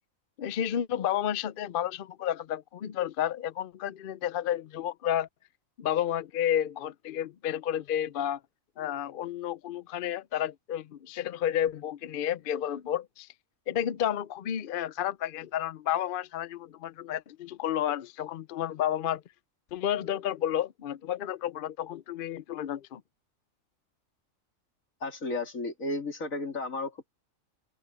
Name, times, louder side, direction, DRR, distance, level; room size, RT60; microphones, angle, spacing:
voice 1, 0.4-5.3 5.8-8.4 8.8-13.3 13.7-19.2 19.7-23.0, left 10 dB, 55° left, 0.6 m, -31 dB
voice 2, 25.0-27.1, left 2 dB, 80° left, 3.4 m, -33 dB
open air
omnidirectional pair, 1.4 m